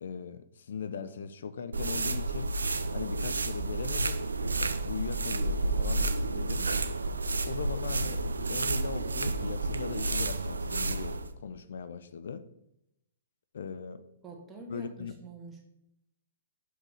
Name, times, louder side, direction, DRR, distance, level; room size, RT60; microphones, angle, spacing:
voice 1, 0.0-2.5 2.9-4.2 4.8-6.7 7.5-8.2 8.5-12.4 13.5-14.0 14.7-15.1, left 6 dB, 65° left, 13 dB, 0.4 m, -39 dB
sound 1, 1.7-11.3, right 2 dB, 85° right, 0.4 m, -31 dB
voice 2, 14.2-15.6, right 3 dB, 15° right, 0 dB, 1.5 m, -45 dB
5.7 x 5.5 x 3.8 m, 0.80 s
figure-of-eight pair, 115°, 0 cm